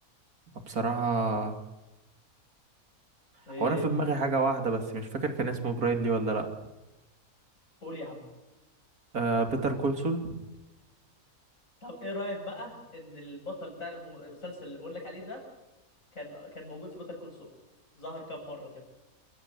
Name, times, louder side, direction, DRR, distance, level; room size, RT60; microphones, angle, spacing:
voice 1, 0.7-1.6 3.6-6.5 9.1-10.4, right 3 dB, 80° right, 5 dB, 3.3 m, -28 dB
voice 2, 3.5-3.9 7.8-8.2 11.8-15.4 16.1-17.5 18.0-18.7, left 1 dB, 65° left, 1 dB, 8.5 m, -39 dB
28.5 x 15.0 x 10.0 m, 1.0 s
omnidirectional pair, 1.5 m